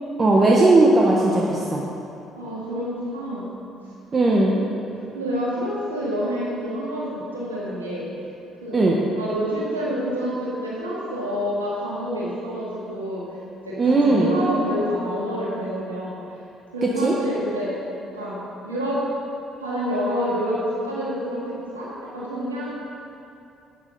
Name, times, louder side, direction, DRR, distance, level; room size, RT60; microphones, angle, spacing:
voice 1, 0.2-1.8 4.1-4.6 8.7-9.0 13.8-14.3 16.8-17.1, right 2 dB, 35° right, -2 dB, 1.2 m, -17 dB
voice 2, 2.4-3.5 4.5-4.8 5.2-8.1 8.6-8.9 9.1-13.2 13.7-16.1 16.7-17.7 18.1-18.4 18.6-19.0 19.6-21.9 22.1-22.7, equal, 90° right, -8 dB, 2.2 m, -28 dB
12.0 x 9.2 x 4.2 m, 2.7 s
figure-of-eight pair, 50°, 0 cm